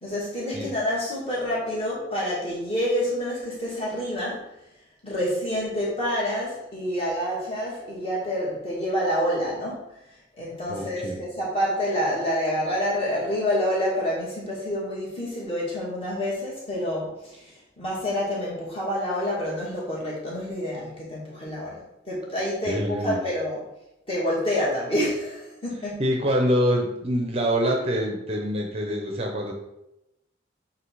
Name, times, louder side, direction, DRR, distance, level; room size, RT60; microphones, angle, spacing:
voice 1, 0.0-4.5 5.0-9.9 10.4-17.5 17.8-23.6 24.1-26.0, equal, 30° left, -7 dB, 2.3 m, -28 dB
voice 2, 10.7-11.2 22.7-23.2 26.0-29.5, equal, 30° right, 1 dB, 0.7 m, -25 dB
8.2 x 2.8 x 4.7 m, 0.91 s
head